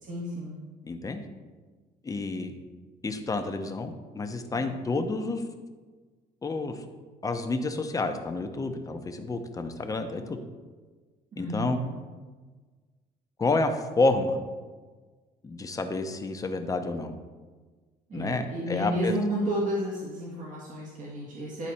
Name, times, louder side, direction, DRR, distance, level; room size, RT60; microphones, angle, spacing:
voice 1, 0.0-0.6 11.3-11.9 18.1-21.7, right 1 dB, 50° right, -5 dB, 1.6 m, -31 dB
voice 2, 0.8-1.2 2.0-2.5 3.0-5.4 6.4-6.8 7.2-10.4 11.4-11.8 13.4-14.4 15.4-17.1 18.1-19.1, left 3 dB, 20° left, 6 dB, 0.8 m, -29 dB
10.5 x 4.1 x 4.2 m, 1.4 s
cardioid pair, 110°, 17 cm